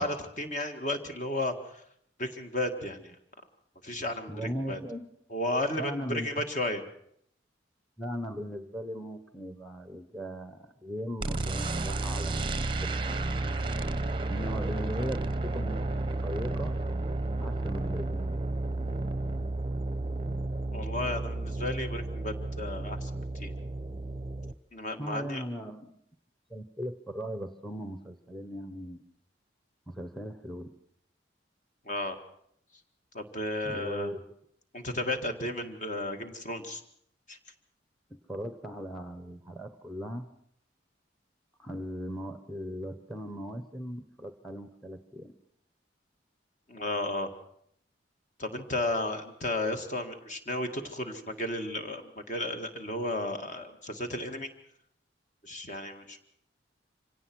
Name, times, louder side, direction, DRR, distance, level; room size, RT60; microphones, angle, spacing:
voice 1, 0.0-1.8 2.2-3.2 3.8-4.8 5.3-6.8 20.7-23.5 24.7-25.4 31.9-32.2 33.1-34.1 34.7-36.8 37.3-37.4 46.7-47.3 48.4-54.5 55.4-56.3, left 1 dB, 40° left, 6 dB, 2.0 m, -33 dB
voice 2, 4.3-5.1 5.8-6.4 8.0-13.3 14.3-15.8 16.2-16.8 17.4-19.2 25.0-26.0 26.5-29.0 29.9-30.7 33.6-34.2 38.1-40.3 41.6-45.3, equal, ahead, 9 dB, 0.9 m, -38 dB
sound 1, 11.2-24.5, right 2 dB, 25° right, 0.7 m, -32 dB
25.0 x 17.5 x 6.2 m, 0.68 s
head